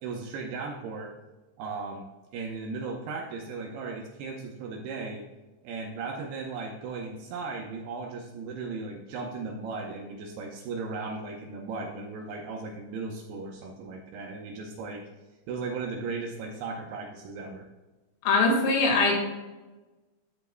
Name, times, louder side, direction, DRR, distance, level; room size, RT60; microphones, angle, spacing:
voice 1, 0.0-1.1 1.6-2.1 2.3-5.2 5.6-15.0 15.5-17.7, right 4 dB, 80° right, 0 dB, 2.4 m, -36 dB
voice 2, 18.3-19.1, left 3 dB, 85° left, 1 dB, 4.3 m, -22 dB
13.0 x 8.0 x 2.2 m, 1.2 s
omnidirectional pair, 5.6 m